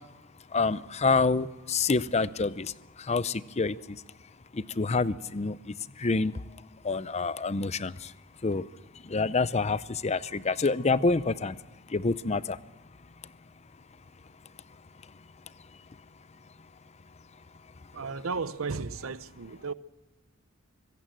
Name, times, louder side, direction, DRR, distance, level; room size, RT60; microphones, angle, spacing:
voice 1, 0.5-2.7 3.1-3.7 4.8-5.5 6.0-6.3 6.9-7.9 8.4-8.6 9.1-11.5 11.9-12.4, left 3 dB, 30° left, 0.6 m, -27 dB
voice 2, 17.9-19.7, right 4 dB, 75° right, 0.7 m, -34 dB
24.5 x 15.5 x 7.7 m
head